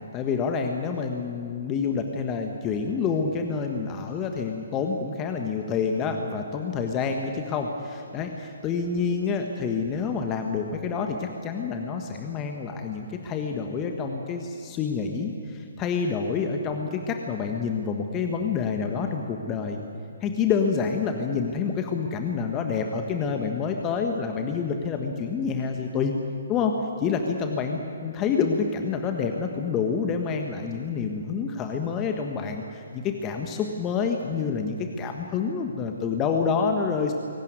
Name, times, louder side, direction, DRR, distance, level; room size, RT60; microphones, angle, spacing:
voice 1, 0.1-19.8 20.2-26.1 26.5-37.1, left 5 dB, 20° left, 4 dB, 1.5 m, -28 dB
23.0 x 18.0 x 9.6 m, 2.6 s
figure-of-eight pair, 130°, 0 cm